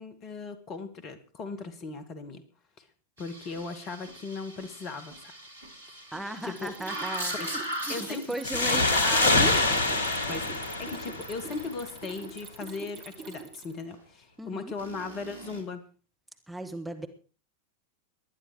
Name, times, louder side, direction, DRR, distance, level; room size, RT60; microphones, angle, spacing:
voice 1, 0.0-2.4 2.8-2.9 3.2-5.3 5.9-6.0 6.4-6.7 7.3-7.5 7.9-8.4 10.3-15.8, left 4 dB, 35° left, 11 dB, 2.1 m, -38 dB
sound 1, 3.2-10.5 14.8-15.6, right 1 dB, 75° right, 3.4 m, -40 dB
voice 2, 6.1-7.6 7.9-9.7 14.4-14.7 16.5-17.1, right 1 dB, 5° right, 4 dB, 1.6 m, -36 dB
Mechanisms, 6.4-13.8, right 5 dB, 40° right, 2.7 m, -44 dB
sound 2, 8.4-11.8, left 2 dB, 65° left, 1.9 m, -25 dB
19.5 x 11.5 x 4.7 m, 0.37 s
figure-of-eight pair, 90°, 0 cm